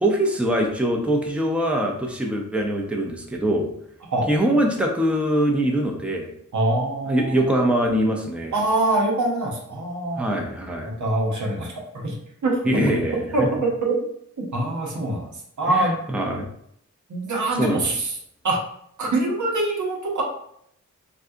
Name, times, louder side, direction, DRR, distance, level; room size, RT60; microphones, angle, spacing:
voice 1, 0.0-3.7 4.3-6.3 7.1-8.6 10.2-10.9 12.6-13.5 15.7-16.5 17.6-17.8, right 1 dB, 5° right, 1 dB, 0.7 m, -23 dB
voice 2, 6.5-7.6 8.5-10.3 10.8-12.1 12.4-12.6 13.3-14.0 14.5-15.3 15.6-16.0 17.1-18.1 18.4-18.6 19.0-20.2, right 2 dB, 70° right, -1 dB, 0.9 m, -24 dB
3.7 x 2.3 x 2.7 m, 0.70 s
cardioid pair, 40°, 31 cm